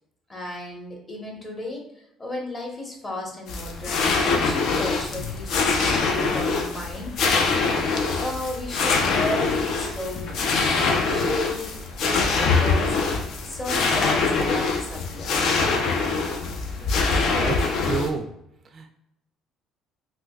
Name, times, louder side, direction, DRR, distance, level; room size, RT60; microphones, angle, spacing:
voice 1, 0.3-10.4 10.8-11.7 12.0-13.0 13.4-15.4, left 1 dB, 25° left, -1 dB, 1.0 m, -34 dB
sound 1, 3.5-18.1, left 4 dB, 65° left, 0.5 m, -24 dB
voice 2, 16.7-18.3 18.6-18.9, right 5 dB, 45° right, 6 dB, 0.3 m, -31 dB
3.7 x 2.5 x 2.3 m, 0.80 s
supercardioid pair, 90°, 0 cm